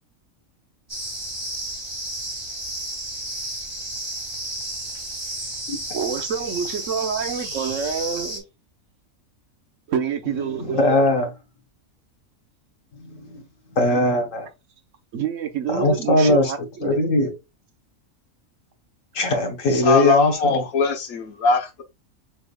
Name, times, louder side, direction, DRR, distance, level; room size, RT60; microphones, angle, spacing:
sound 1, 0.9-8.4, right 1 dB, 20° right, 1.9 m, -32 dB
voice 1, 5.9-8.5 9.9-11.0 15.1-17.0, right 7 dB, 65° right, 1.2 m, -27 dB
voice 2, 10.7-11.3 13.0-13.4 13.7-14.5 15.7-16.5 16.8-17.3 19.1-20.6, left 1 dB, 70° left, 1.5 m, -20 dB
voice 3, 19.7-21.8, left 4 dB, 90° left, 1.4 m, -21 dB
6.2 x 3.5 x 2.3 m
omnidirectional pair, 1.4 m